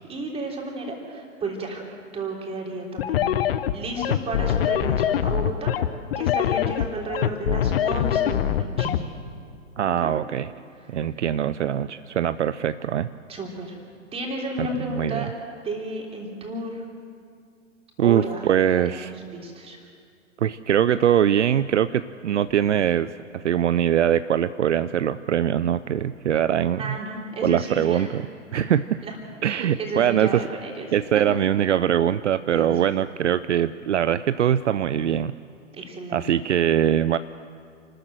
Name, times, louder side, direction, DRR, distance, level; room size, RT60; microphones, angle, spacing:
voice 1, 0.1-1.9 2.1-5.7 6.2-8.9 9.8-10.1 10.9-11.0 13.3-13.8 14.1-15.3 15.6-16.8 18.0-19.8 26.8-28.1 28.5-28.6 29.0-29.2 29.4-30.9 31.2-31.3 32.5-32.7 35.7-36.4, right 2 dB, 15° right, 0 dB, 3.5 m, -32 dB
sound 1, 3.0-9.0, left 10 dB, 50° left, 0.9 m, -23 dB
voice 2, 9.8-10.5 10.9-13.1 14.6-15.3 18.0-19.1 20.4-27.0 27.4-28.2 28.5-29.1 29.4-30.4 30.9-35.4 36.1-37.2, right 10 dB, 65° right, 15 dB, 0.6 m, -22 dB
28.0 x 13.5 x 7.8 m, 2.3 s
figure-of-eight pair, 110°, 38 cm